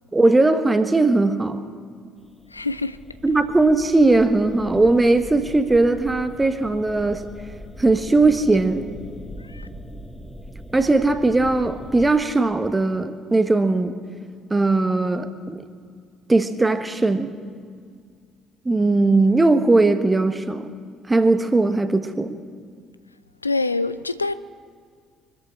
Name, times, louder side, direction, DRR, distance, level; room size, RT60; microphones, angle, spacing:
voice 1, 0.1-1.6 3.2-7.2 7.8-8.9 10.7-13.9 14.5-15.6 16.3-17.3 18.6-20.7 21.1-22.4, right 2 dB, 15° right, 1.2 m, -19 dB
sound 1, 2.2-12.1, equal, 5° left, 1.7 m, -40 dB
voice 2, 2.5-3.0 9.5-9.7 23.4-24.3, left 3 dB, 85° left, 0.3 m, -25 dB
24.5 x 13.5 x 4.4 m
figure-of-eight pair, 50°, 0 cm